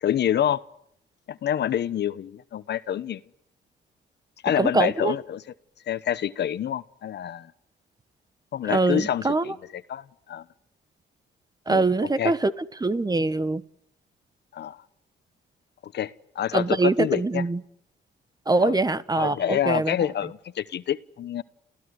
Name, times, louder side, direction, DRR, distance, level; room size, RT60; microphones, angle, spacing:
voice 1, 0.0-0.6 1.3-3.2 4.4-5.4 5.9-7.5 8.5-10.4 11.7-12.3 14.5-14.8 15.8-17.4 18.6-18.8 19.1-21.4, left 10 dB, 60° left, 15 dB, 1.0 m, -27 dB
voice 2, 4.6-5.1 8.7-9.4 11.7-12.5 12.8-13.6 16.5-17.6 18.5-19.9, right 3 dB, 20° right, 16 dB, 1.2 m, -23 dB
30.0 x 16.0 x 9.6 m, 0.73 s
cardioid pair, 90°, 20 cm